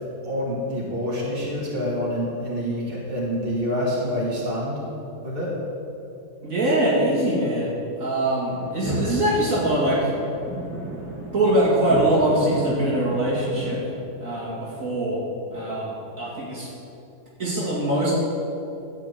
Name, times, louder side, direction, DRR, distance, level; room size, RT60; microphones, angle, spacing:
voice 1, 0.2-4.8 5.2-5.5, equal, 35° right, -5 dB, 2.6 m, -27 dB
voice 2, 6.4-10.2 11.3-13.9 14.2-16.7 17.4-18.1, right 1 dB, 55° right, -7 dB, 2.7 m, -23 dB
sound 1, 8.5-13.8, right 1 dB, 10° right, 3.0 m, -33 dB
14.5 x 4.9 x 8.5 m, 2.7 s
omnidirectional pair, 1.7 m